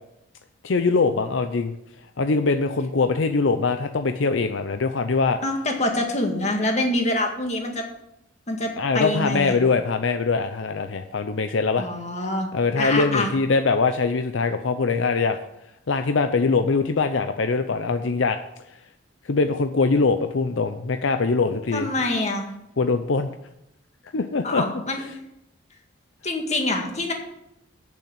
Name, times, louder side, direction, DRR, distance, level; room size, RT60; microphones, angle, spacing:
voice 1, 0.6-1.7 2.2-5.4 8.8-11.9 12.5-15.4 15.9-18.4 19.3-21.9 22.8-23.3 24.1-24.6, left 4 dB, 70° left, 8 dB, 0.6 m, -22 dB
voice 2, 5.4-7.8 8.5-9.6 11.8-12.5 12.8-13.3 21.7-22.5 24.4-25.0 26.2-27.1, left 1 dB, 35° left, 2 dB, 1.8 m, -25 dB
8.6 x 7.0 x 8.0 m, 0.83 s
head